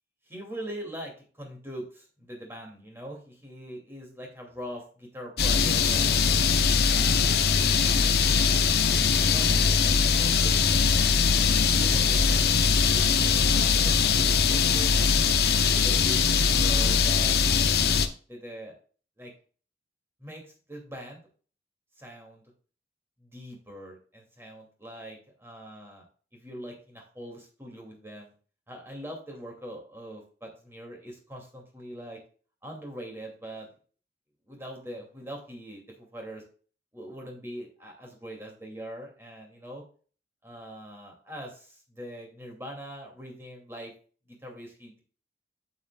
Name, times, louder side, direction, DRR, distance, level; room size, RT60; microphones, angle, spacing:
voice 1, 0.3-6.2 6.8-8.4 9.2-10.9 11.6-15.0 15.4-17.7 18.3-18.7 19.2-19.3 20.2-20.4 20.7-21.2 22.0-22.4 23.2-26.0 26.3-28.3 28.7-32.2 32.6-33.7 34.5-36.4 36.9-39.8 40.4-43.9 44.3-45.0, equal, 15° right, 0 dB, 2.5 m, -42 dB
sound 1, 5.4-18.1, left 6 dB, 60° left, 0.7 m, -22 dB
8.5 x 7.2 x 2.4 m, 0.40 s
head